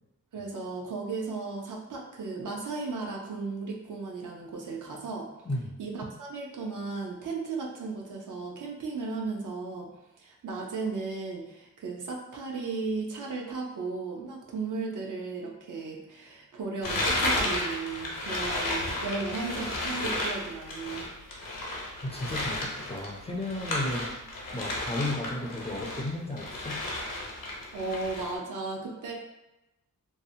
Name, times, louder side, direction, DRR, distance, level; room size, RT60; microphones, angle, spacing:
voice 1, 0.3-5.3 5.8-9.9 10.2-21.4 27.7-29.1, right 4 dB, 65° right, -1 dB, 0.6 m, -35 dB
sound 1, 16.8-26.1 26.3-28.3, left 1 dB, 75° left, 0.7 m, -33 dB
voice 2, 22.0-26.8, left 1 dB, 20° left, -2 dB, 0.3 m, -34 dB
2.7 x 2.0 x 2.6 m, 0.96 s
wide cardioid pair, 95°, 33 cm